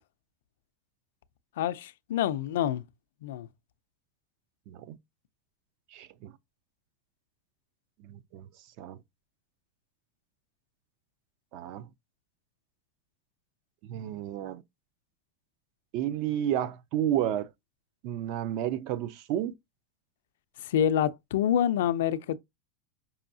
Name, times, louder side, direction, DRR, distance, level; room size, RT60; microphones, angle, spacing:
voice 1, 1.6-2.8 3.2-3.5 20.6-22.4, left 10 dB, 85° left, 0.3 m, -27 dB
voice 2, 4.7-5.0 5.9-6.3 8.0-8.5 8.8-9.0 11.5-11.9 13.8-14.6 15.9-17.5 18.0-19.5, right 11 dB, 45° right, 0.4 m, -31 dB
5.5 x 2.6 x 2.6 m
supercardioid pair, 160°, 0 cm